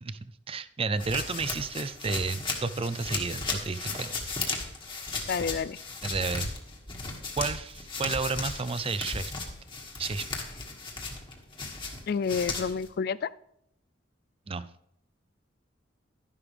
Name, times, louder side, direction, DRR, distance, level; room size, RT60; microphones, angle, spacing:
voice 1, 0.0-4.1 6.0-6.5 7.4-9.3 10.0-10.4 14.5-14.7, right 4 dB, 30° right, 14 dB, 0.5 m, -32 dB
sound 1, 1.0-12.9, left 3 dB, 25° left, 1.8 m, -36 dB
voice 2, 5.3-5.8 12.1-13.3, left 6 dB, 55° left, 18 dB, 0.3 m, -29 dB
11.5 x 11.0 x 3.4 m, 0.75 s
head